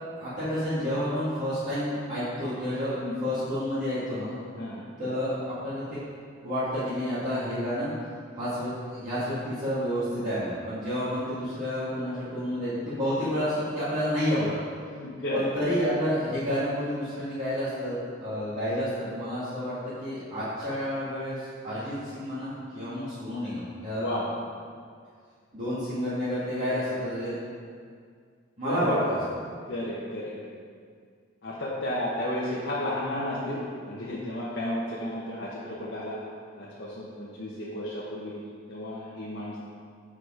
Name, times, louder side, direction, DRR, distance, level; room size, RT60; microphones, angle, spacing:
voice 1, 0.2-3.0 3.2-4.4 5.0-6.0 6.4-7.9 8.4-14.5 15.3-18.0 18.2-24.1 25.5-27.3 28.6-29.4, equal, 40° right, -14 dB, 1.8 m, -30 dB
voice 2, 14.9-15.5 23.9-24.3 28.6-29.0 29.7-30.3 31.4-36.2 36.5-38.3 38.7-39.6, left 1 dB, 60° left, -7 dB, 0.9 m, -33 dB
6.7 x 4.9 x 5.0 m, 2.1 s
head